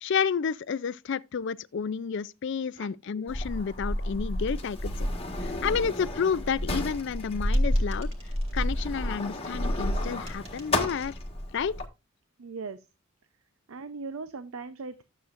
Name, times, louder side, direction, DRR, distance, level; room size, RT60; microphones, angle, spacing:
voice 1, 0.0-5.1 5.4-8.1 8.5-11.1 11.5-11.7, left 6 dB, 55° left, 0.4 m, -30 dB
Sliding door, 3.3-11.9, left 1 dB, 25° left, 1.5 m, -30 dB
sound 1, 7.5-8.7 10.3-10.8, right 2 dB, 30° right, 2.2 m, -52 dB
voice 2, 12.4-12.8 13.7-15.0, right 4 dB, 80° right, 0.6 m, -38 dB
12.0 x 7.6 x 2.5 m
head